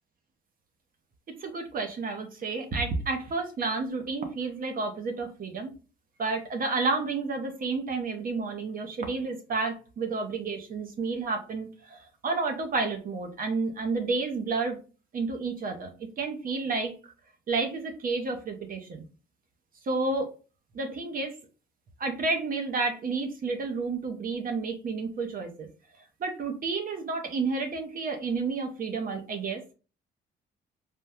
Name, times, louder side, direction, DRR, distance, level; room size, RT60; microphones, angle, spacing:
voice 1, 1.4-5.7 6.2-14.8 15.1-17.1 17.5-19.0 19.8-20.3 20.7-21.3 22.0-25.7 26.2-29.7, right 4 dB, 45° right, 5 dB, 0.7 m, -30 dB
3.5 x 2.1 x 2.7 m, 0.34 s
cardioid pair, 90°, 20 cm